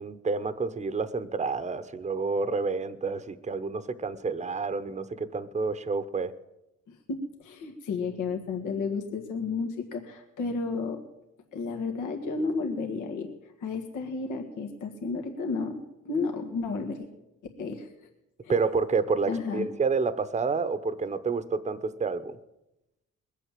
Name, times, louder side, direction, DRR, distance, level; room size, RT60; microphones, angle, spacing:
voice 1, 0.0-6.3 18.5-22.4, right 4 dB, 25° right, 12 dB, 0.9 m, -29 dB
voice 2, 6.9-11.0 11.5-13.3 13.6-15.8 16.1-17.1 17.6-17.9 18.4-18.6 19.3-19.7, left 4 dB, 85° left, 3 dB, 1.8 m, -32 dB
21.0 x 8.3 x 7.5 m, 0.93 s
cardioid pair, 90°, 30 cm